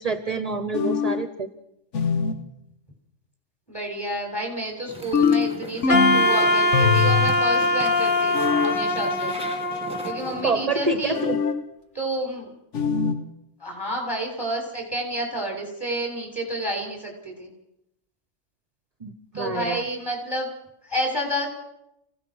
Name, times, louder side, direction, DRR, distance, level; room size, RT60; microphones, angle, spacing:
voice 1, 0.0-1.5 10.3-11.4 19.0-19.8, right 3 dB, 35° right, 10 dB, 1.0 m, -27 dB
sound 1, 0.7-1.3 1.9-2.5 5.1-6.3 6.7-7.4 8.3-8.8 11.1-11.7 12.7-13.3, left 6 dB, 75° left, 1.5 m, -22 dB
voice 2, 3.7-9.3 10.0-11.2 11.9-12.5 13.6-17.5 19.3-20.5 20.8-21.5, right 1 dB, 20° left, 0 dB, 6.8 m, -30 dB
sound 2, 4.9-10.5, right 1 dB, 5° right, 1.9 m, -39 dB
Wind instrument woodwind instrument, 5.9-10.9, left 1 dB, 45° left, 1.6 m, -22 dB
28.5 x 17.0 x 6.3 m, 0.86 s
omnidirectional pair, 1.3 m